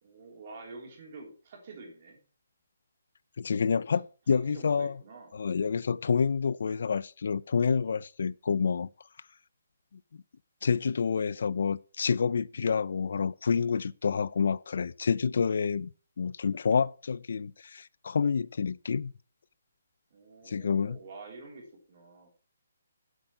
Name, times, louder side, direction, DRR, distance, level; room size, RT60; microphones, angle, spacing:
voice 1, 0.0-2.2 4.3-5.3 20.1-22.3, right 3 dB, 30° right, 3.1 m, -48 dB
voice 2, 3.4-5.0 5.3-8.9 10.6-15.9 16.2-19.1 20.4-21.0, left 6 dB, 50° left, 0.4 m, -28 dB
8.1 x 7.8 x 5.9 m
hypercardioid pair, 180°, 0 cm